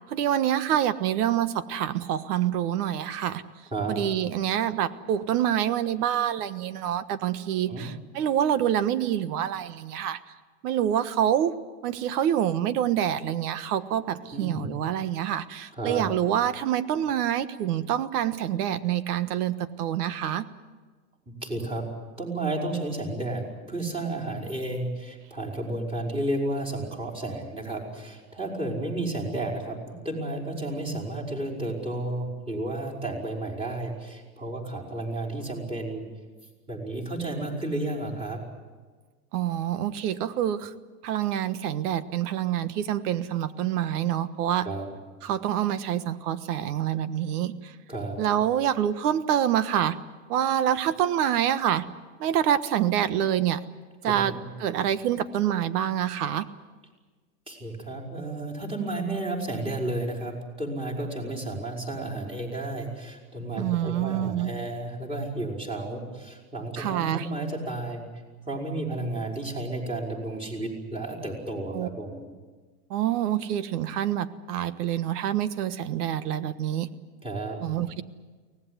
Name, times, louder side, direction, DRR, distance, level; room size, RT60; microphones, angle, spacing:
voice 1, 0.1-3.4 3.9-10.2 10.6-11.5 11.8-20.4 39.3-40.7 41.0-44.7 45.2-47.7 48.2-50.0 50.3-51.8 52.2-53.6 54.0-54.3 54.6-56.5 63.5-64.5 66.8-67.3 71.7-71.9 72.9-76.9 77.6-78.0, right 10 dB, 75° right, 14 dB, 1.4 m, -26 dB
voice 2, 3.7-4.0 7.7-7.9 14.3-14.6 15.8-16.1 21.4-21.8 22.2-36.0 36.7-38.4 44.6-44.9 47.9-48.2 54.1-54.4 57.5-68.0 68.5-72.2 77.2-77.6, right 2 dB, 10° right, -3 dB, 5.2 m, -32 dB
24.0 x 18.0 x 9.6 m, 1.4 s
supercardioid pair, 145°, 46 cm